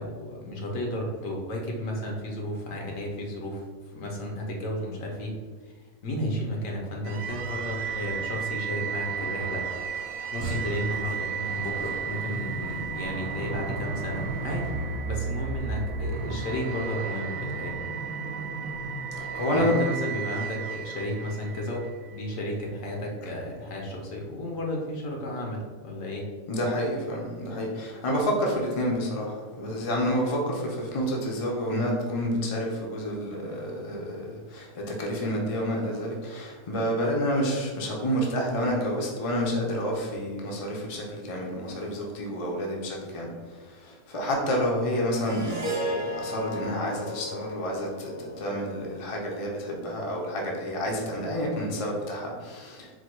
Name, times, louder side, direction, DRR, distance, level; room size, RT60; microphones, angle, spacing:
voice 1, 0.0-5.4 6.0-9.7 10.3-14.7 15.1-17.8 19.5-26.3, equal, 65° left, -1 dB, 1.2 m, -33 dB
sound 1, 7.0-22.2, right 5 dB, 80° right, 1.0 m, -33 dB
sound 2, 7.1-15.0, right 2 dB, 40° right, 0.9 m, -44 dB
voice 2, 19.3-19.8 26.5-52.9, equal, 35° left, -2 dB, 0.5 m, -29 dB
Harp, 45.2-49.6, equal, 20° right, 0.4 m, -35 dB
4.3 x 2.3 x 4.4 m, 1.4 s
omnidirectional pair, 1.5 m